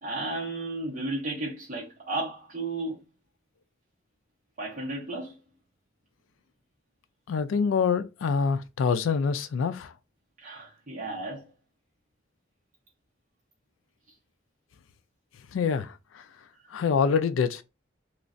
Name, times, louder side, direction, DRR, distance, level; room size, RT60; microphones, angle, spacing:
voice 1, 0.0-3.0 4.6-5.4 10.4-11.5, right 2 dB, 40° right, 0.8 m, -33 dB
voice 2, 7.3-9.9 15.5-16.2 16.7-17.6, left 5 dB, 90° left, 0.3 m, -26 dB
3.1 x 2.3 x 2.5 m
head